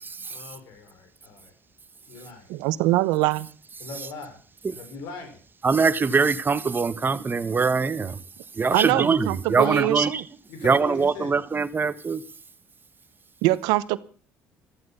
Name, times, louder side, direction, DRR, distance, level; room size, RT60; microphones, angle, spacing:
voice 1, 0.3-1.5 2.1-2.5 3.8-4.4 4.7-5.4 8.7-8.8 9.6-9.9 10.5-11.4, left 4 dB, 75° left, 5.3 m, -39 dB
voice 2, 2.5-3.5 8.7-10.2 13.4-14.0, right 18 dB, 85° right, 1.0 m, -23 dB
voice 3, 5.6-8.2 8.6-10.1 10.6-12.2, right 4 dB, 30° right, 1.3 m, -22 dB
14.5 x 14.0 x 5.6 m
supercardioid pair, 75°, 7 cm